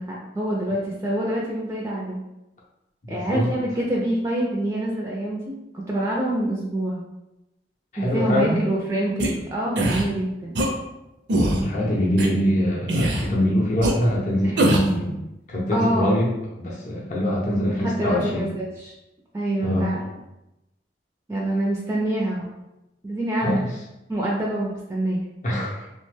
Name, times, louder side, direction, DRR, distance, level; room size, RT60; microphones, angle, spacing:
voice 1, 0.0-2.2 3.1-5.6 5.9-7.0 8.0-10.6 14.4-14.7 15.7-16.2 17.6-18.9 19.3-20.0 21.3-22.5 23.0-23.6 24.1-25.2, right 1 dB, 15° right, -3 dB, 0.3 m, -26 dB
voice 2, 3.0-3.5 7.9-8.6 11.4-15.2 15.5-16.3 16.6-18.5 19.6-19.9 23.4-23.7 25.4-25.9, equal, 45° left, -4 dB, 0.6 m, -23 dB
sound 1, 9.2-9.3 9.8-10.0 10.5-10.7 11.3-11.6 12.2-12.3 12.9-13.3 13.8-13.9 14.6-14.9, right 1 dB, 75° right, 0.5 m, -21 dB
2.8 x 2.1 x 3.2 m, 0.93 s
head